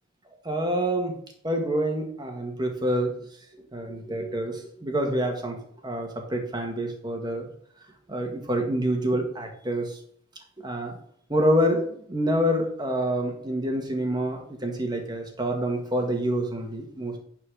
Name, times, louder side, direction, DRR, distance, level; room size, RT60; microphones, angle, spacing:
voice 1, 0.4-1.2 1.4-3.2 3.7-7.5 8.1-10.0 10.6-11.0 11.3-17.2, equal, 20° right, 2 dB, 1.9 m, -27 dB
9.7 x 4.5 x 6.5 m, 0.65 s
head